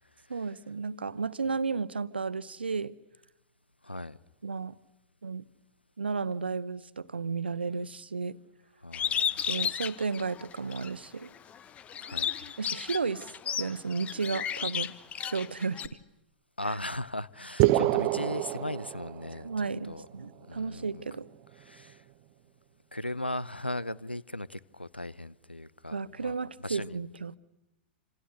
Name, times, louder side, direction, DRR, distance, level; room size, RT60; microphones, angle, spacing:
voice 1, 0.3-3.0 4.4-4.7 5.2-5.4 6.0-8.4 9.5-11.3 12.6-13.3 13.6-14.9 15.3-15.9 19.4-21.3 25.9-27.4, right 4 dB, 75° right, 1.0 m, -33 dB
voice 2, 3.8-4.2 8.8-9.5 12.0-12.5 16.6-19.5 19.9-20.0 20.5-21.0 21.7-22.0 22.9-26.3 26.6-27.0, left 1 dB, 90° left, 0.8 m, -37 dB
Bird, 8.9-10.9 11.4-15.9, left 8 dB, 25° left, 1.3 m, -33 dB
sound 1, 17.6-19.5, right 17 dB, 40° right, 1.0 m, -26 dB
28.0 x 26.5 x 6.6 m
figure-of-eight pair, 100°, 6 cm